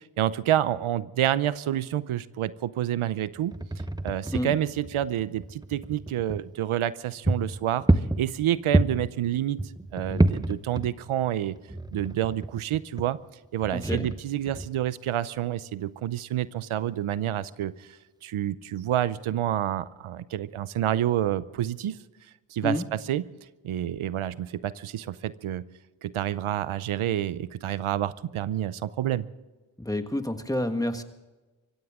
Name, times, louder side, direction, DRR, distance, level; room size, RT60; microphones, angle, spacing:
voice 1, 0.0-3.5 4.0-7.8 8.2-9.6 9.9-11.6 11.9-13.2 13.5-17.9 18.2-22.0 22.5-23.2 23.6-25.6 26.0-29.3, right 12 dB, 85° right, 16 dB, 0.7 m, -28 dB
sound 1, 3.4-6.4 6.9-7.0 7.2-9.1 9.6-11.3 11.6-13.0 13.6-14.9, right 1 dB, 10° right, 0.8 m, -28 dB
voice 2, 13.7-14.1 22.6-22.8 29.8-31.0, left 1 dB, 5° left, 7 dB, 1.5 m, -29 dB
24.5 x 15.5 x 3.7 m, 1.2 s
cardioid pair, 70°, 48 cm